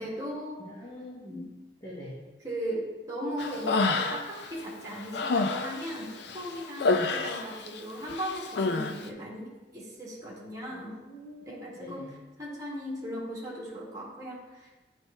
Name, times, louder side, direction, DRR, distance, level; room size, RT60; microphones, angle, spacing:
voice 1, 0.0-0.6 1.3-1.5 2.4-10.9 11.4-12.1 12.4-14.7, equal, 20° right, -5 dB, 1.6 m, -37 dB
voice 2, 0.6-1.5 1.8-2.2 6.9-7.1 10.7-12.1, equal, 20° left, -8 dB, 1.2 m, -44 dB
Human voice, 3.4-4.5 4.8-7.8 8.1-8.9, left 3 dB, 65° left, 0.4 m, -28 dB
8.9 x 3.3 x 4.1 m, 1.1 s
head